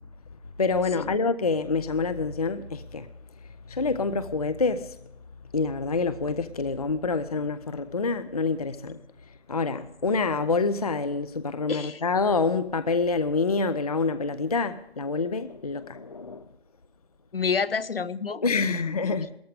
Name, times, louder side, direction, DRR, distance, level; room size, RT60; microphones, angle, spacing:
voice 1, 0.6-3.1 3.7-5.0 5.5-9.0 9.5-16.5 18.4-19.4, left 4 dB, 35° left, 0.5 m, -27 dB
voice 2, 11.7-12.0 17.3-19.1, left 5 dB, 60° left, 0.8 m, -30 dB
18.0 x 14.0 x 5.0 m
figure-of-eight pair, 150°, 32 cm